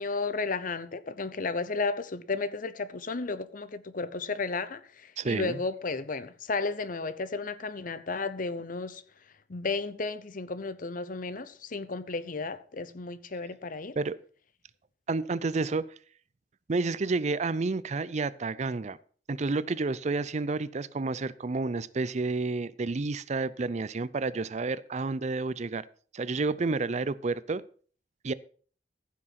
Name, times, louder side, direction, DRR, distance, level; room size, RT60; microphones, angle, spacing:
voice 1, 0.0-9.0 9.5-14.0, left 3 dB, 50° left, 0.8 m, -33 dB
voice 2, 5.2-5.6 14.0-14.2 15.1-15.9 16.7-19.0 19.3-25.9 26.1-27.6 28.2-28.3, right 3 dB, 40° right, 0.5 m, -30 dB
15.0 x 6.3 x 5.8 m
head